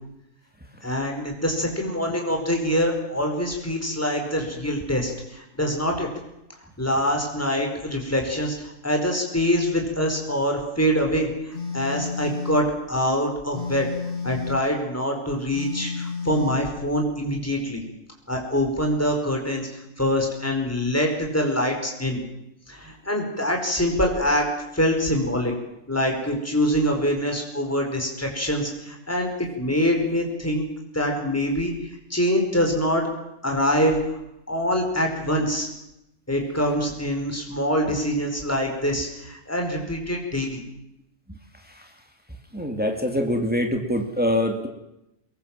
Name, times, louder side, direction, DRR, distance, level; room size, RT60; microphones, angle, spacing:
voice 1, 0.8-6.1 6.8-13.9 14.2-17.8 18.3-22.2 22.7-25.5 25.9-29.3 29.6-30.6 30.9-31.7 32.1-33.1 33.4-34.2 34.5-35.7 36.3-40.6, equal, 10° left, 2 dB, 5.0 m, -24 dB
Telephone, 11.5-12.7 13.5-14.7 15.5-16.7, left 5 dB, 60° left, 2.3 m, -31 dB
voice 2, 42.5-44.7, equal, 5° right, 4 dB, 2.5 m, -24 dB
23.5 x 22.0 x 7.5 m, 0.87 s
omnidirectional pair, 1.3 m